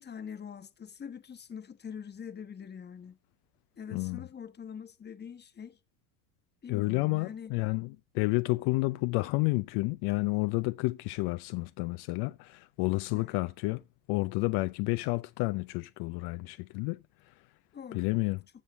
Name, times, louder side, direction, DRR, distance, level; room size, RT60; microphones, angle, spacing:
voice 1, 0.0-3.2 3.8-5.8 6.6-7.5 13.1-13.3 17.7-18.1, left 7 dB, 25° left, 1.2 m, -44 dB
voice 2, 3.9-4.2 6.7-13.8 14.1-17.0 17.9-18.4, left 24 dB, 65° left, 0.6 m, -30 dB
14.0 x 8.2 x 3.4 m
supercardioid pair, 110°, 42 cm